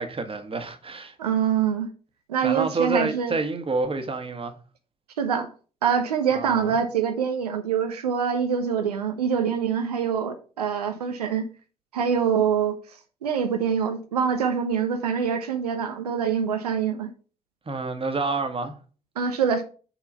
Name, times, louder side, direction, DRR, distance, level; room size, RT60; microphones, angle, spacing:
voice 1, 0.0-1.1 2.4-4.6 6.3-6.8 17.7-18.8, right 3 dB, 30° right, 1.3 m, -28 dB
voice 2, 1.2-1.9 2.3-3.4 5.2-5.5 5.8-11.4 11.9-12.8 13.2-17.1 19.2-19.6, right 7 dB, 85° right, 0.5 m, -25 dB
6.1 x 3.7 x 5.4 m
figure-of-eight pair, 45°, 19 cm